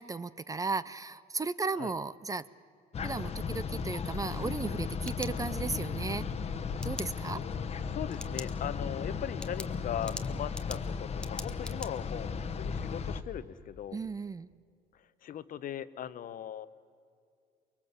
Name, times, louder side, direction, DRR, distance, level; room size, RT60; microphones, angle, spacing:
voice 1, 0.0-2.5 3.0-6.3 6.8-7.4 13.9-14.5, right 4 dB, 20° right, 17 dB, 0.5 m, -35 dB
sound 1, 2.9-13.2, left 5 dB, 40° left, 1.2 m, -36 dB
sound 2, 4.9-5.9 6.8-7.1 8.1-8.5 8.9-9.0 9.4-11.9, left 1 dB, 5° left, 1.0 m, -43 dB
voice 2, 7.3-14.0 14.9-16.7, left 10 dB, 55° left, 14 dB, 0.9 m, -39 dB
24.0 x 22.0 x 8.1 m, 2.3 s
cardioid pair, 110°, 17 cm